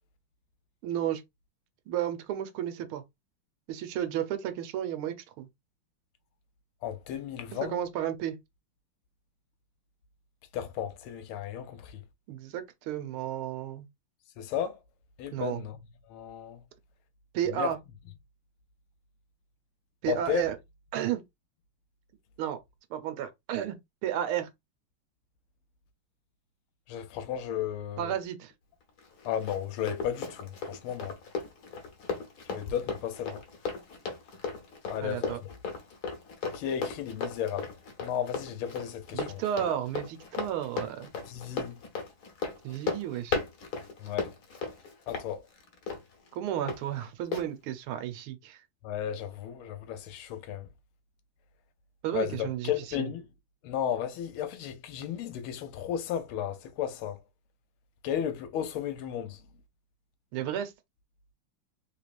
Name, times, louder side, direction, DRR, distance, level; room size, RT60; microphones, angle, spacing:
voice 1, 0.8-1.2 1.9-3.0 3.7-5.5 7.5-8.4 12.3-13.9 15.3-15.7 17.3-17.8 20.0-20.6 20.9-21.2 22.4-22.6 22.9-23.8 24.0-24.5 28.0-28.5 35.0-35.4 39.1-41.1 42.6-43.4 46.3-48.6 52.0-52.7 53.0-53.1 60.3-60.7, right 11 dB, 80° right, 1.6 m, -32 dB
voice 2, 6.8-7.7 10.5-12.0 14.4-14.8 15.2-15.8 16.1-16.6 17.6-17.7 20.1-20.4 26.9-28.1 29.2-31.1 32.5-33.4 34.9-35.5 36.5-37.7 38.0-39.4 41.3-41.8 44.0-44.3 45.1-45.4 48.8-50.7 52.1-53.2 53.6-57.2 58.0-59.4, left 9 dB, 80° left, 1.5 m, -34 dB
Run, 29.0-46.8 47.3-47.5, left 5 dB, 55° left, 1.3 m, -36 dB
3.6 x 3.1 x 2.4 m
omnidirectional pair, 2.3 m